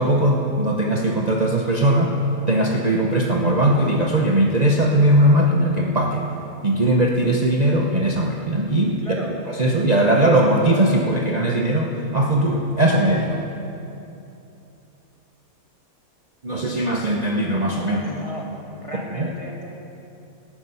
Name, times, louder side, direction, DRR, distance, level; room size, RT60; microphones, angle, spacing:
voice 1, 0.0-2.1 2.5-6.2 6.6-9.2 9.6-13.4 16.4-18.0 19.2-19.3, right 1 dB, 35° right, -1 dB, 0.8 m, -19 dB
voice 2, 9.0-9.3 17.8-18.5 18.8-19.7, equal, 25° left, -1 dB, 1.6 m, -35 dB
18.0 x 9.5 x 5.7 m, 2.8 s
omnidirectional pair, 1.5 m